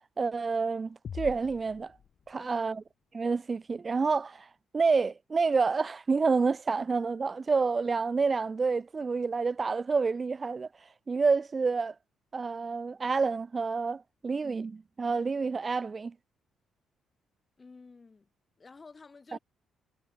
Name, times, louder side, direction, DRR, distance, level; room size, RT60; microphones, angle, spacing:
voice 1, 0.2-2.0 2.3-2.8 3.1-4.5 4.7-10.7 11.1-11.9 12.3-16.1 19.3-19.4, right 4 dB, 35° right, 0.3 m, -28 dB
sound 1, 1.0-2.8, left 7 dB, 55° left, 0.6 m, -44 dB
voice 2, 2.4-2.8 17.6-18.3 18.6-19.4, left 4 dB, 30° left, 3.4 m, -51 dB
cardioid pair, 90°, 0 cm